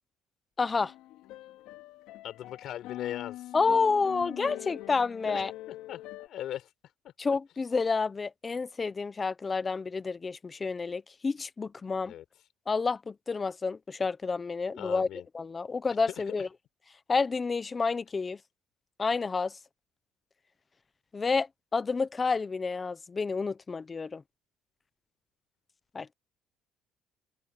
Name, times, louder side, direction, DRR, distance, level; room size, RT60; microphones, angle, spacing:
voice 1, 0.6-0.9 3.5-5.5 7.2-12.1 12.7-15.1 15.3-16.5 17.1-18.4 19.0-19.6 21.1-24.2 25.9-26.1, left 4 dB, 25° left, 1.0 m, -29 dB
sound 1, 0.8-6.3, left 15 dB, 80° left, 2.4 m, -43 dB
voice 2, 2.2-3.6 5.3-6.7 12.1-12.2 14.8-15.3 16.3-16.4, left 11 dB, 65° left, 4.3 m, -39 dB
open air
cardioid pair, 100°, 0 cm